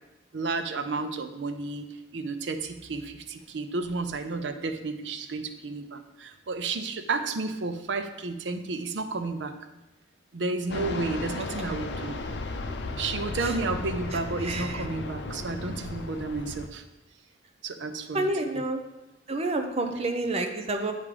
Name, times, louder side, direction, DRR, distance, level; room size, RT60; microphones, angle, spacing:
voice 1, 0.3-1.9 2.1-9.5 10.3-12.2 13.0-16.8 17.6-18.3 18.5-18.7, right 3 dB, 85° right, 8 dB, 0.6 m, -32 dB
Fixed-wing aircraft airplane, 10.7-16.7, left 2 dB, 70° left, 0.6 m, -35 dB
voice 2, 14.4-14.8 18.1-18.8 19.3-20.9, right 2 dB, 35° right, 5 dB, 0.7 m, -28 dB
8.3 x 3.6 x 4.9 m, 1.0 s
head